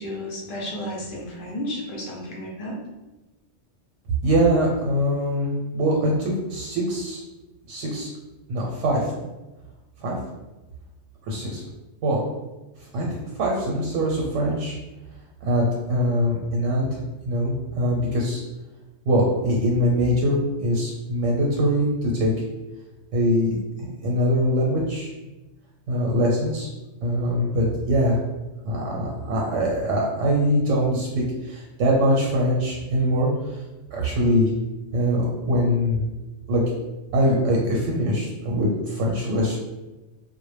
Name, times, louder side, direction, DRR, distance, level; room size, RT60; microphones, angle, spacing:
voice 1, 0.0-2.8, left 1 dB, 55° left, -2 dB, 0.7 m, -32 dB
voice 2, 4.2-7.2 7.7-8.1 8.5-9.1 10.0-10.2 11.2-11.6 12.0-12.2 12.9-13.1 13.4-14.7 15.4-16.9 17.3-18.4 19.1-22.3 23.1-23.5 23.8-25.1 25.9-26.7 27.0-28.2 28.6-33.6 33.9-34.5 34.9-36.0 36.5-36.6 37.1-39.6, equal, 85° right, -2 dB, 0.9 m, -23 dB
2.1 x 2.0 x 3.2 m, 1.1 s
omnidirectional pair, 1.3 m